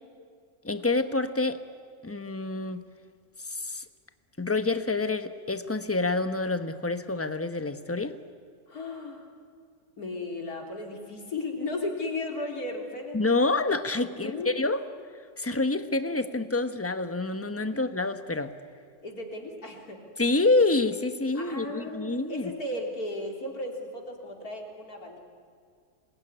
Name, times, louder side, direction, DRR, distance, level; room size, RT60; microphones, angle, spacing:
voice 1, 0.6-1.6 2.0-2.8 3.4-3.8 4.4-8.2 13.1-14.8 15.4-18.5 20.2-22.5, left 3 dB, 10° left, 9 dB, 0.9 m, -27 dB
voice 2, 8.7-9.3 10.0-13.2 14.1-14.5 17.7-17.9 19.0-20.0 21.3-25.2, left 2 dB, 70° left, 1 dB, 4.0 m, -35 dB
27.0 x 21.5 x 9.9 m, 2.2 s
omnidirectional pair, 1.6 m